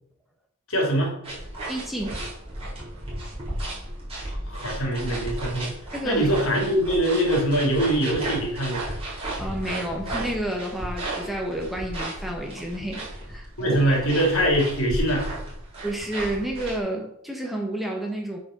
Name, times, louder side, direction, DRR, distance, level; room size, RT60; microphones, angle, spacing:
voice 1, 0.7-1.1 4.2-5.7 6.0-8.9 13.6-15.3, right 1 dB, 70° left, 0 dB, 3.0 m, -23 dB
sound 1, 1.2-16.8, right 1 dB, 25° right, 4.1 m, -34 dB
voice 2, 1.7-2.2 5.9-6.4 9.4-14.0 15.8-18.4, right 1 dB, ahead, 0 dB, 1.3 m, -30 dB
8.4 x 5.1 x 6.5 m, 0.73 s
head